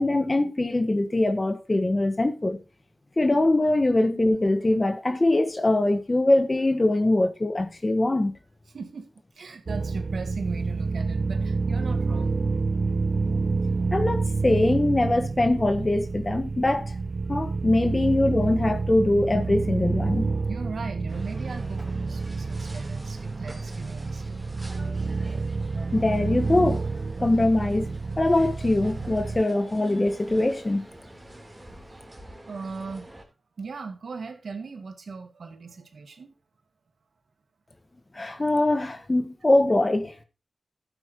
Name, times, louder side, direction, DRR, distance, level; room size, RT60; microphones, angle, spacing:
voice 1, 0.0-2.6 3.2-8.3 13.9-16.9 17.3-20.3 25.9-26.8 27.2-30.8 38.1-40.1, left 2 dB, 30° left, 1.4 m, -23 dB
voice 2, 8.7-9.1 9.4-12.4 20.5-24.4 32.5-33.1 33.6-36.3, right 4 dB, 80° right, 2.0 m, -38 dB
sound 1, 9.7-29.4, right 4 dB, 55° right, 0.4 m, -28 dB
sound 2, 21.1-33.2, right 1 dB, 15° right, 3.6 m, -46 dB
12.5 x 8.9 x 3.1 m
cardioid pair, 60°, 0 cm